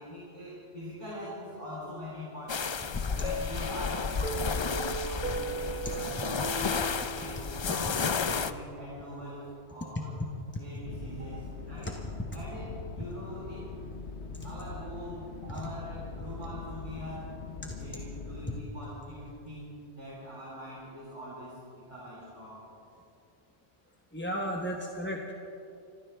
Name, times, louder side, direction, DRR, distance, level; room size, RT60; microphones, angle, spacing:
voice 1, 0.0-2.7 3.1-6.8 7.2-10.1 10.6-11.9 12.3-13.8 14.4-17.3 17.7-22.6, equal, 25° right, -8 dB, 3.8 m, -43 dB
sound 1, 2.5-8.5, left 5 dB, 45° left, 0.3 m, -32 dB
sound 2, 3.2-7.9, right 3 dB, 50° right, 2.5 m, -38 dB
sound 3, 10.9-18.6, left 4 dB, 80° left, 1.2 m, -42 dB
voice 2, 24.1-25.3, equal, 10° left, 0 dB, 0.9 m, -34 dB
26.5 x 14.5 x 3.4 m, 2.7 s
omnidirectional pair, 1.1 m